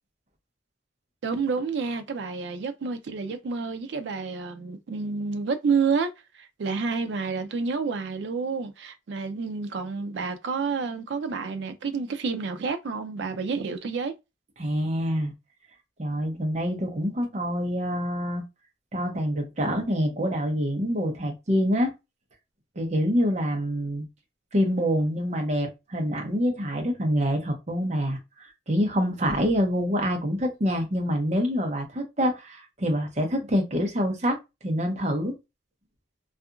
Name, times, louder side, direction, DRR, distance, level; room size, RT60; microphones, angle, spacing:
voice 1, 1.2-14.1, right 5 dB, 70° right, 0.4 m, -29 dB
voice 2, 14.6-15.3 16.0-18.4 18.9-21.9 22.8-24.1 24.5-34.4 34.6-35.4, equal, 35° right, 0.7 m, -26 dB
2.7 x 2.4 x 2.4 m
head